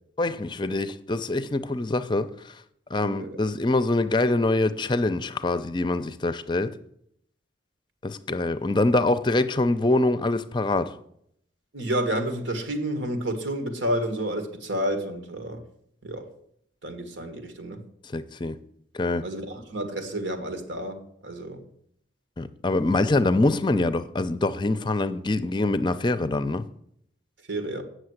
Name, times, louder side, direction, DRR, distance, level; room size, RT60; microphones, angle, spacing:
voice 1, 0.2-2.5 2.9-6.8 8.0-11.0 18.1-18.6 18.9-19.2 22.4-26.7, left 2 dB, 25° left, 0.5 m, -24 dB
voice 2, 3.0-3.4 11.7-15.6 16.0-16.3 16.8-17.9 19.2-21.7 27.5-27.8, right 1 dB, 85° right, 1.7 m, -30 dB
8.6 x 6.5 x 8.0 m
head